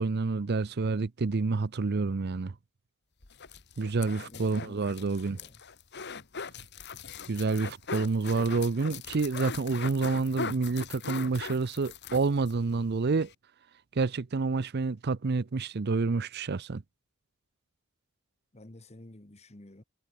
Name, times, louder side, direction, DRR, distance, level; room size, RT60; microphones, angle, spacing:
voice 1, 0.0-2.5 3.8-5.4 7.3-13.3 14.0-16.8, right 4 dB, 45° right, 0.5 m, -28 dB
sound 1, 3.2-12.6 12.9-13.0 13.2-13.3, left 5 dB, 50° left, 1.7 m, -40 dB
voice 2, 4.1-5.6 18.5-19.8, left 1 dB, 30° left, 1.3 m, -52 dB
head